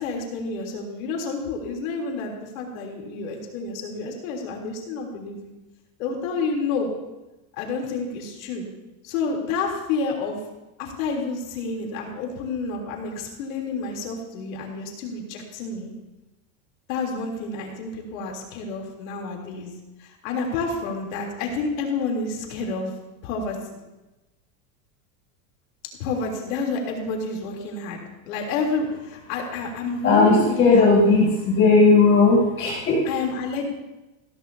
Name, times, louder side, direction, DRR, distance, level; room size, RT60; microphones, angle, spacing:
voice 1, 0.0-5.5 6.0-6.9 7.5-8.7 9.0-10.4 10.8-15.9 16.9-19.7 20.0-22.9 23.2-23.8 26.0-28.0 28.3-30.7 31.1-31.2 33.1-33.7, left 4 dB, 70° left, 0 dB, 3.4 m, -29 dB
voice 2, 30.0-33.1, left 3 dB, 30° left, -6 dB, 4.5 m, -17 dB
16.0 x 14.0 x 2.8 m, 1.0 s
supercardioid pair, 160°, 42 cm